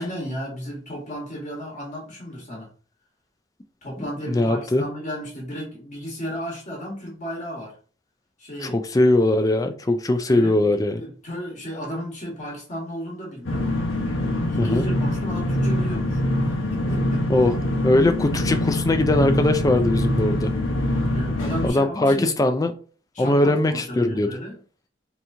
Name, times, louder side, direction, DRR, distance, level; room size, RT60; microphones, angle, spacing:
voice 1, 0.0-2.7 3.8-7.8 8.4-8.8 10.3-10.7 11.0-13.7 14.5-16.2 16.7-17.3 21.0-22.3 23.1-24.6, equal, 40° left, 1.2 m, -33 dB
voice 2, 4.3-4.8 8.6-11.0 14.6-14.8 17.3-17.6 17.8-20.5 21.6-22.7 23.2-24.3, left 1 dB, 20° left, 0.3 m, -20 dB
sound 1, 13.4-21.7, left 1 dB, 85° left, 0.9 m, -24 dB
3.4 x 2.9 x 2.6 m
head